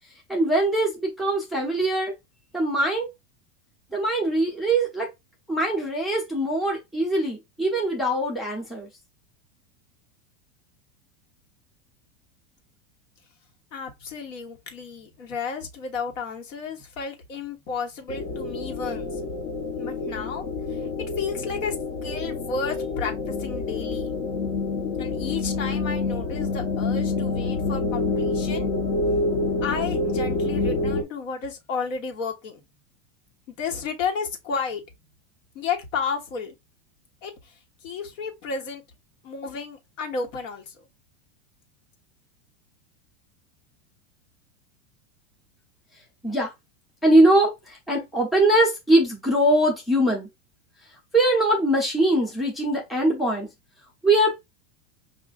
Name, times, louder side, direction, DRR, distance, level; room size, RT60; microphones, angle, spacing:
voice 1, 0.3-2.1 2.5-3.1 3.9-5.1 5.5-8.9 46.2-46.5 47.0-50.3 51.1-53.5 54.0-54.5, right 1 dB, ahead, 0.4 m, -22 dB
voice 2, 13.7-19.2 19.8-20.9 21.2-21.8 22.0-24.1 25.0-28.7 29.6-32.6 33.5-34.8 35.5-36.5 37.2-37.5 37.8-38.8 39.2-40.8, left 5 dB, 90° left, 1.3 m, -32 dB
sound 1, 18.1-31.0, left 3 dB, 45° left, 0.7 m, -27 dB
5.2 x 2.5 x 2.4 m
supercardioid pair, 155°, 37 cm